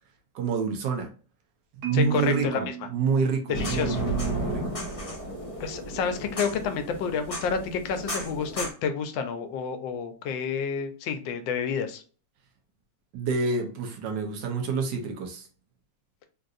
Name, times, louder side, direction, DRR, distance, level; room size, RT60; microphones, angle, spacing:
voice 1, 0.3-1.1 1.8-4.8 13.1-15.5, right 5 dB, 75° right, 3 dB, 1.4 m, -28 dB
Marimba xylophone, 1.8-4.0, right 12 dB, 60° right, 1.4 m, -36 dB
voice 2, 1.9-2.7 3.5-4.0 5.6-12.0, left 6 dB, 85° left, 8 dB, 1.3 m, -29 dB
sound 1, 3.5-8.7, right 1 dB, 25° left, 1.0 m, -33 dB
3.7 x 2.6 x 2.4 m, 0.38 s
omnidirectional pair, 2.0 m